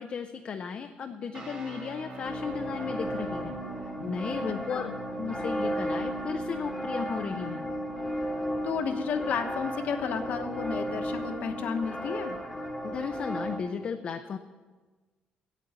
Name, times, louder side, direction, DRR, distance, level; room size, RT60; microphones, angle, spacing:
voice 1, 0.0-3.6 3.8-7.7 12.8-14.4, left 6 dB, 40° left, 6 dB, 0.5 m, -35 dB
sound 1, 1.3-9.6, right 4 dB, 35° right, 1.9 m, -45 dB
sound 2, 2.2-13.6, equal, 5° left, 1.3 m, -34 dB
voice 2, 8.6-12.4, left 6 dB, 60° left, 6 dB, 1.2 m, -32 dB
9.2 x 8.4 x 8.8 m, 1.3 s
cardioid pair, 150°, 3 cm